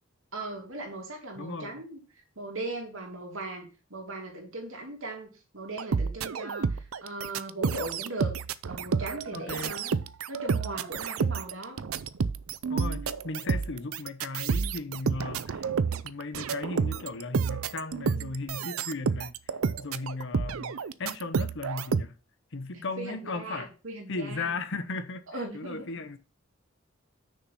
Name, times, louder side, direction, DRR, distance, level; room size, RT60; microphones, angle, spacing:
voice 1, 0.3-2.0 2.4-8.3 8.7-11.8 22.7-24.5 25.3-25.9, right 2 dB, 70° right, 2.9 m, -38 dB
voice 2, 1.4-1.7 9.3-9.7 12.7-15.7 16.0-19.3 19.8-22.1 22.5-23.7 24.1-25.2 25.5-26.2, left 3 dB, 65° left, 1.0 m, -36 dB
sound 1, 5.8-22.0, right 5 dB, 85° right, 0.5 m, -30 dB
6.5 x 5.7 x 5.6 m
head